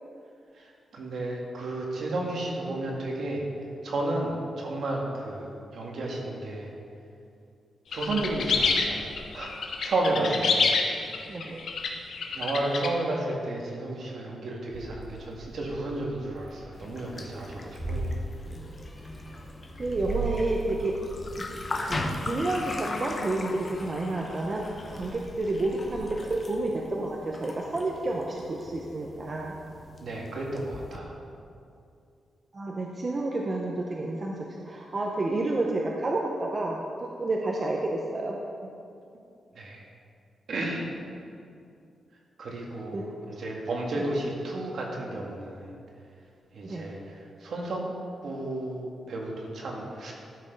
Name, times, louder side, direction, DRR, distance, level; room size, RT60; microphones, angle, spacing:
voice 1, 0.5-3.4 3.8-6.7 7.9-11.2 12.3-18.1 30.0-31.2 39.5-39.8 40.5-40.9 42.4-45.7 46.5-47.8 48.2-50.1, right 2 dB, 55° right, -1 dB, 1.8 m, -32 dB
sound 1, 7.9-12.9, left 4 dB, 60° left, 1.0 m, -27 dB
voice 2, 11.3-11.6 19.8-20.9 21.4-21.5 21.7-24.6 24.9-29.5 32.5-38.4 42.9-43.0 44.0-44.1 46.6-46.8, right 2 dB, 30° right, -1 dB, 0.7 m, -30 dB
Meow, 14.7-26.0, right 2 dB, 5° right, 2.3 m, -40 dB
sound 2, 16.7-31.0, left 2 dB, 30° left, 0.8 m, -39 dB
12.5 x 6.2 x 5.3 m, 2.5 s
wide cardioid pair, 175°, 0 cm